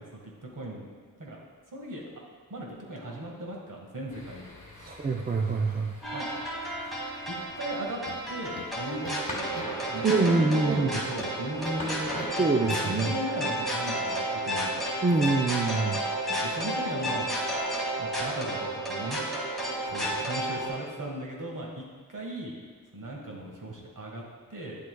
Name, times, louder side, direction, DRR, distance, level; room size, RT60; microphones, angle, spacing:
voice 1, 0.1-0.9 1.2-1.4 1.7-2.0 2.5-5.0 6.1-6.3 7.3-8.0 8.3-14.8 16.4-17.3 18.0-19.2 19.8-22.5 22.9-24.2 24.5-24.8, right 1 dB, 60° right, -2 dB, 1.7 m, -37 dB
sound 1, 4.1-12.3, left 1 dB, 20° left, 1.7 m, -44 dB
voice 2, 4.8-5.9 10.0-10.9 12.4-13.1 15.0-16.0, right 3 dB, 25° right, 2 dB, 0.5 m, -25 dB
sound 2, 6.0-20.7, right 1 dB, ahead, 1.9 m, -32 dB
sound 3, 8.1-8.3 8.6-9.3 9.6-9.8 10.1-10.3 10.7-11.9 12.2-12.4 12.7-13.2, left 4 dB, 40° left, 0.6 m, -44 dB
9.9 x 7.9 x 2.3 m, 1.5 s
wide cardioid pair, 90°, 35 cm